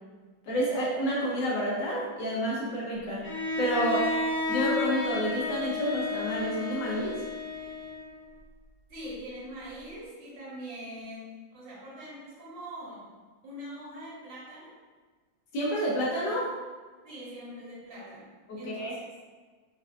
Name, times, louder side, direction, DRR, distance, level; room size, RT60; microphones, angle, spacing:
voice 1, 0.4-3.2 3.6-4.1 4.5-7.1 15.5-16.5 18.5-18.9, equal, 70° left, -5 dB, 1.4 m, -29 dB
Bowed string instrument, 3.2-8.2, left 3 dB, 50° left, 1.1 m, -32 dB
voice 2, 8.9-13.1 13.4-14.7 17.0-19.0, equal, 65° right, -8 dB, 2.0 m, -43 dB
4.5 x 2.3 x 2.5 m, 1.4 s
omnidirectional pair, 2.2 m